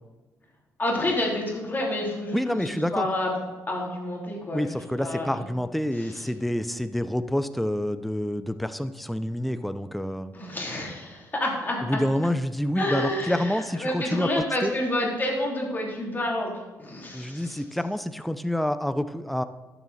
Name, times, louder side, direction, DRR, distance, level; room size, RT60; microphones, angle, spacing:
voice 1, 0.8-3.3 3.7-4.7 5.0-5.3 6.0-6.1 10.3-12.0 12.7-16.5 16.8-17.6, left 1 dB, 30° left, -1 dB, 3.2 m, -29 dB
voice 2, 2.3-3.1 4.5-10.3 11.8-14.7 17.1-19.4, left 1 dB, ahead, 11 dB, 0.5 m, -28 dB
12.0 x 7.0 x 4.2 m, 1.3 s
supercardioid pair, 70°, 7 cm